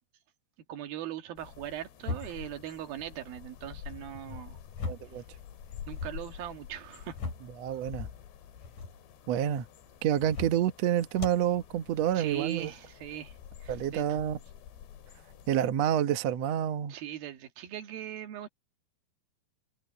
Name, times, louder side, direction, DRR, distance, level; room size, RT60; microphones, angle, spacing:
voice 1, 0.7-4.6 5.9-7.2 12.1-13.4 13.6-14.2 16.9-18.5, right 11 dB, 65° right, 3.3 m, -40 dB
sound 1, 1.4-15.7, left 9 dB, 90° left, 4.5 m, -48 dB
sound 2, 2.0-2.6 4.1-5.2 5.5-6.2 6.8-7.6 8.5-9.0 10.2-10.7 11.1-11.5, left 4 dB, 45° left, 6.6 m, -38 dB
voice 2, 4.9-5.2 7.6-8.1 9.3-9.6 10.0-12.7 13.7-14.4 15.5-16.9, right 10 dB, 85° right, 1.4 m, -28 dB
open air
omnidirectional pair, 4.8 m